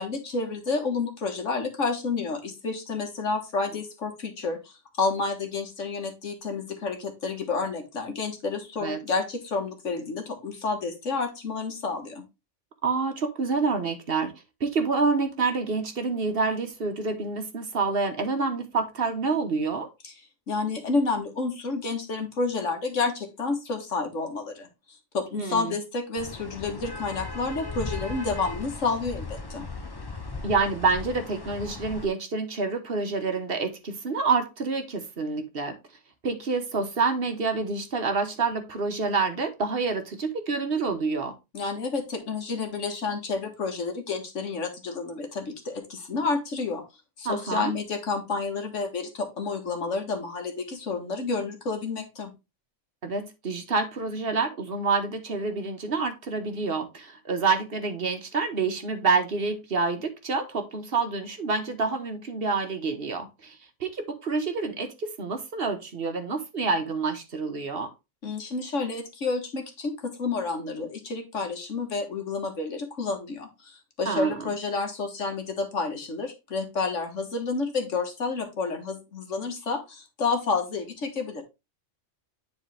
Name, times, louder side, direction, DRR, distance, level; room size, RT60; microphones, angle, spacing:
voice 1, 0.0-12.2 20.0-20.1 20.5-24.7 25.1-29.7 41.5-46.8 47.2-52.3 68.2-81.4, left 4 dB, 80° left, 1.9 m, -30 dB
voice 2, 12.8-14.3 14.6-19.9 25.4-25.8 30.4-35.7 36.2-41.3 47.2-47.7 53.0-67.9 74.1-74.5, right 4 dB, 50° right, 1.3 m, -27 dB
sound 1, 26.2-32.1, left 3 dB, 20° left, 0.8 m, -37 dB
10.0 x 4.1 x 3.3 m
omnidirectional pair, 1.3 m